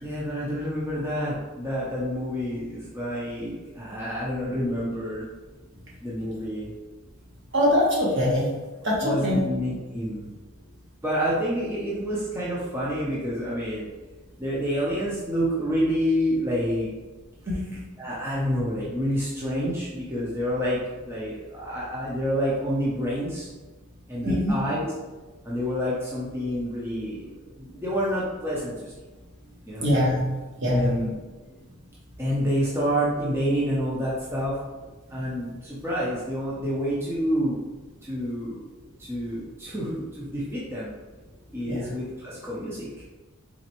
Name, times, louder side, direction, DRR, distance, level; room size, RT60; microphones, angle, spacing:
voice 1, 0.0-5.2 6.0-6.7 9.0-10.3 11.0-13.9 14.4-16.9 18.0-20.8 21.1-23.5 24.1-24.9 25.5-27.2 27.6-28.7 29.7-29.9 30.7-31.1 32.2-34.5 35.1-35.5 35.8-37.6 38.1-38.6 39.1-40.9 41.5-42.9, equal, 10° right, -7 dB, 0.6 m, -28 dB
voice 2, 7.5-8.4 8.8-9.0 9.2-9.4 17.5-17.8 24.2-24.5 29.8-30.2 30.6-30.9 41.7-41.8, left 1 dB, 50° right, -4 dB, 1.1 m, -22 dB
4.1 x 3.2 x 2.9 m, 1.2 s
head